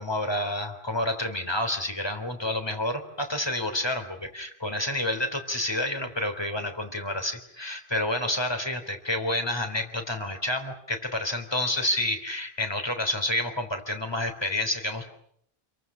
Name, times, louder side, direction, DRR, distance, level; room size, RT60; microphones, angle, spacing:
voice 1, 0.0-15.1, left 1 dB, 25° left, 7 dB, 3.5 m, -29 dB
29.5 x 23.0 x 6.2 m, 0.67 s
omnidirectional pair, 1.0 m